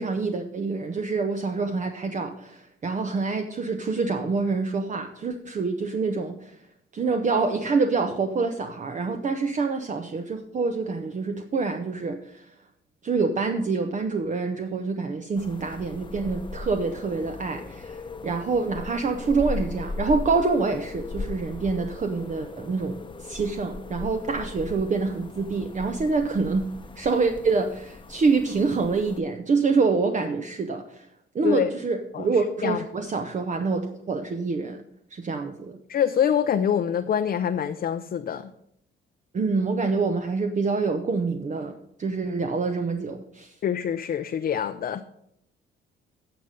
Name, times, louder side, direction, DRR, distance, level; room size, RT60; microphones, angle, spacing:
voice 1, 0.0-6.6 6.9-12.5 13.0-26.7 27.0-31.1 31.3-34.8 35.1-35.8 39.3-41.7 42.0-43.5, right 4 dB, 40° right, 6 dB, 0.8 m, -26 dB
sound 1, 15.4-29.2, left 3 dB, 25° left, 0.8 m, -38 dB
voice 2, 35.9-38.5 43.6-45.0, left 8 dB, 50° left, 8 dB, 0.5 m, -25 dB
10.0 x 6.7 x 5.1 m, 0.74 s
cardioid pair, 90°, 20 cm